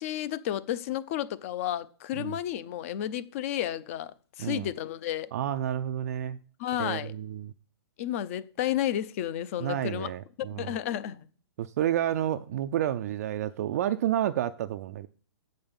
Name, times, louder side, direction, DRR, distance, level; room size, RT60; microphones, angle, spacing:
voice 1, 0.0-5.3 6.6-7.1 8.0-10.1 10.5-11.3, left 11 dB, 30° left, 0.5 m, -32 dB
voice 2, 4.4-4.7 5.3-6.4 6.8-7.5 9.6-10.8 11.6-15.1, right 11 dB, 35° right, 0.3 m, -30 dB
7.7 x 5.2 x 7.1 m
hypercardioid pair, 160°, 14 cm